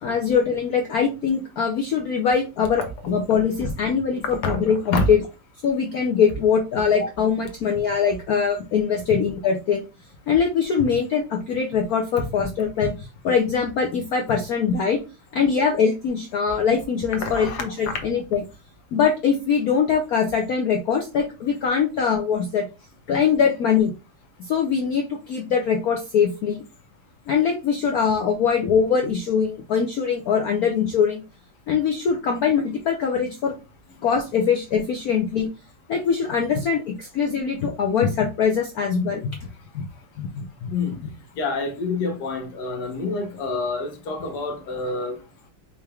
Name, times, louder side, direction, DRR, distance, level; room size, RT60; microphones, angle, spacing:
voice 1, 0.0-5.2 5.6-9.8 10.3-12.9 13.2-15.0 15.3-18.4 18.9-22.7 23.1-23.9 24.4-26.6 27.3-31.2 31.7-33.5 34.0-35.5 35.9-39.3 39.7-39.8 40.2-40.7, left 6 dB, 75° left, 0.8 m, -22 dB
voice 2, 17.2-18.0 40.7-41.0 41.4-45.2, left 3 dB, 60° left, 1.3 m, -27 dB
5.7 x 3.3 x 2.3 m
omnidirectional pair, 2.4 m